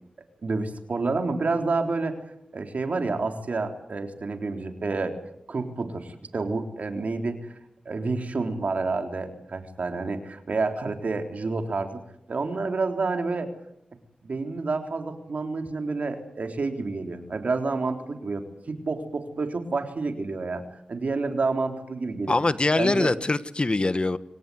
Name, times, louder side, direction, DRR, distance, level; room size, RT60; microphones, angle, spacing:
voice 1, 0.4-2.2 2.5-5.2 5.5-7.4 7.9-12.0 12.3-13.5 14.2-20.6 20.9-22.4 22.8-23.1, right 3 dB, 70° right, 6 dB, 3.6 m, -29 dB
voice 2, 22.3-24.2, left 2 dB, 40° left, 14 dB, 1.4 m, -23 dB
26.5 x 17.5 x 9.4 m, 0.76 s
cardioid pair, 50°, 3 cm